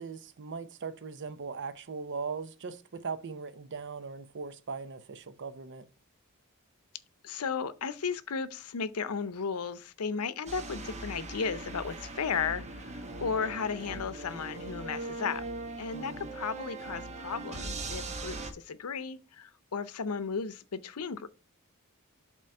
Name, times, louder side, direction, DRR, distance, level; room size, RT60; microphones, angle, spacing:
voice 1, 0.0-5.9 15.9-16.3, right 5 dB, 55° right, 0.6 m, -39 dB
voice 2, 7.2-15.4 15.8-21.3, left 5 dB, 85° left, 0.6 m, -35 dB
sound 1, 10.5-18.5, right 2 dB, 30° right, 1.1 m, -40 dB
7.7 x 3.0 x 5.4 m
head